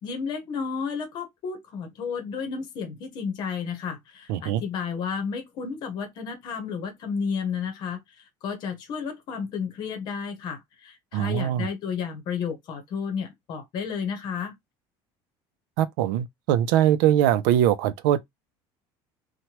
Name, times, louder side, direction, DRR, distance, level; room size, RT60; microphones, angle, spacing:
voice 1, 0.0-14.5, left 6 dB, 40° left, 0.9 m, -32 dB
voice 2, 4.3-4.6 11.1-11.7 15.8-18.2, right 11 dB, 90° right, 0.4 m, -22 dB
3.0 x 2.2 x 2.8 m
cardioid pair, 175°, 11 cm